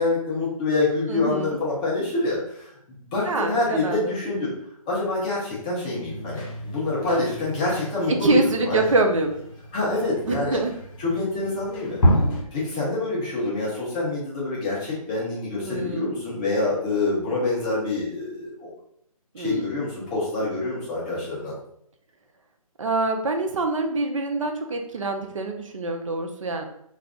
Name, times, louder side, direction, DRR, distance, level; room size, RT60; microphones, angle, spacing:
voice 1, 0.0-2.7 3.1-4.5 4.9-8.8 9.7-10.6 11.0-12.0 12.5-18.7 19.4-21.5, left 2 dB, 15° left, -6 dB, 0.5 m, -26 dB
voice 2, 1.1-1.6 3.3-4.1 8.2-9.4 10.3-10.7 15.6-16.1 19.3-19.7 22.8-26.7, right 3 dB, 60° right, 4 dB, 0.5 m, -25 dB
sound 1, 6.1-12.4, equal, 55° left, 1.3 m, -29 dB
2.4 x 2.3 x 3.5 m, 0.72 s
figure-of-eight pair, 150°, 19 cm